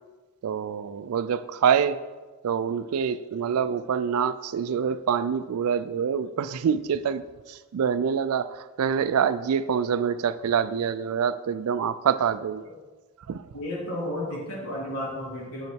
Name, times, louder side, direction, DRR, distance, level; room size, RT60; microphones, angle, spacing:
voice 1, 0.4-2.0 2.4-7.2 7.5-12.6 13.3-13.4, right 7 dB, 75° right, 14 dB, 0.3 m, -26 dB
voice 2, 13.5-15.7, left 1 dB, 75° left, -5 dB, 2.7 m, -32 dB
7.3 x 5.6 x 4.5 m, 1.3 s
head